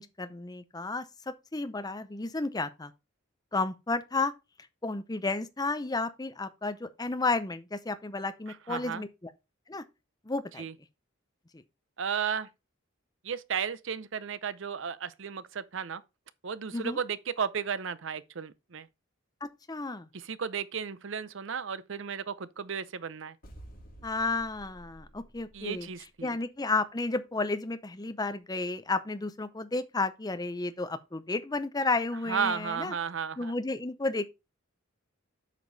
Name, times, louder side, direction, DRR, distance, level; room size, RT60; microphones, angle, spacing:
voice 1, 0.0-2.9 3.5-4.3 4.8-9.1 9.7-9.8 10.3-10.6 11.5-11.6 16.7-17.0 19.4-20.1 24.0-25.9 26.2-32.9 33.4-34.3, left 3 dB, 20° left, 0.6 m, -32 dB
voice 2, 8.7-9.0 10.6-10.7 12.0-12.5 13.2-16.0 16.4-18.9 20.1-23.3 25.5-26.4 32.3-33.5, right 7 dB, 65° right, 0.6 m, -34 dB
sound 1, 23.4-26.2, right 1 dB, 45° left, 2.5 m, -51 dB
8.3 x 5.1 x 4.0 m
head